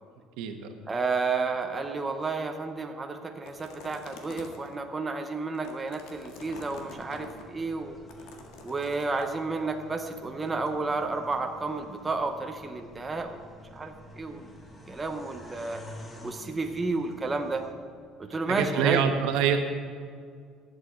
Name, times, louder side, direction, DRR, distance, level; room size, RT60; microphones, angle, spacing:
voice 1, 0.4-0.8 18.5-19.6, right 8 dB, 80° right, 6 dB, 1.3 m, -25 dB
voice 2, 0.9-8.0 8.6-13.5 13.7-14.5 14.9-15.8 16.2-17.6 18.2-19.1, right 3 dB, 15° right, 4 dB, 0.7 m, -31 dB
sound 1, 3.4-4.8 5.4-7.4 8.1-9.2, left 4 dB, 85° left, 1.7 m, -47 dB
sound 2, 6.4-17.7, equal, 15° left, 1.2 m, -49 dB
11.5 x 7.9 x 7.8 m, 2.1 s
cardioid pair, 170°, 0 cm